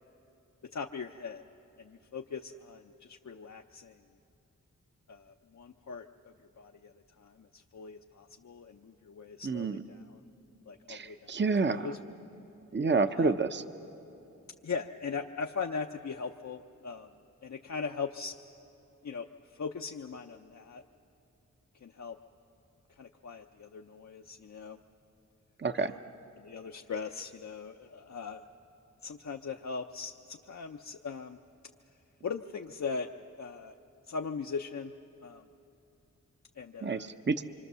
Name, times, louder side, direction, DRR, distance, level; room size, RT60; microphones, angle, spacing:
voice 1, 0.6-1.4 1.8-4.0 5.1-10.2 10.7-11.3 11.6-12.0 13.1-13.3 14.6-17.1 17.4-18.3 19.0-20.8 21.8-22.2 23.0-24.8 25.7-26.0 26.4-28.4 29.0-31.4 32.2-33.1 33.4-33.7 34.1-34.9 35.2-35.4 36.6-37.1, left 5 dB, 55° left, 3 dB, 0.7 m, -40 dB
voice 2, 9.4-9.8 10.9-11.9 12.7-13.6 25.6-25.9 36.8-37.4, right 4 dB, 35° right, 9 dB, 0.8 m, -29 dB
25.5 x 25.0 x 6.9 m, 2.9 s
cardioid pair, 45°, 32 cm